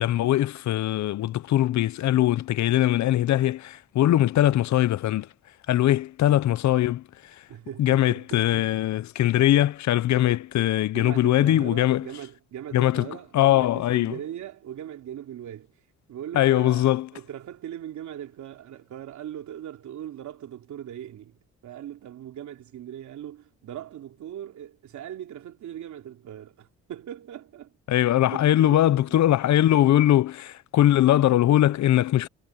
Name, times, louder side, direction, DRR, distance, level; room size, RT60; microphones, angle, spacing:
voice 1, 0.0-5.3 5.7-7.0 7.8-12.0 12.7-13.1 13.3-14.1 16.3-17.1 27.9-32.3, left 13 dB, 70° left, 0.8 m, -21 dB
voice 2, 7.5-8.8 10.9-15.7 16.1-27.8 28.2-29.2, right 10 dB, 70° right, 3.5 m, -40 dB
cardioid pair, 90°, 30 cm